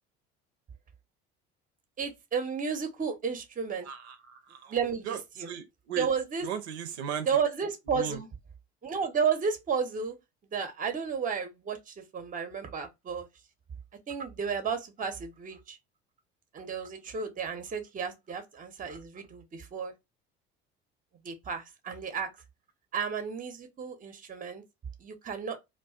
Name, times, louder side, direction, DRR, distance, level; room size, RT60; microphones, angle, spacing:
voice 1, 2.0-3.9 4.7-5.5 6.0-6.5 7.3-8.3 8.8-10.2 10.5-13.3 14.1-15.8 16.5-19.9 21.2-22.3 22.9-24.6 25.0-25.6, right 6 dB, 25° right, 0.7 m, -32 dB
voice 2, 3.9-4.8 5.1-5.2 5.5-6.1 6.4-7.3 7.9-8.2, right 8 dB, 70° right, 0.6 m, -36 dB
2.4 x 2.3 x 2.3 m
figure-of-eight pair, 60°, 34 cm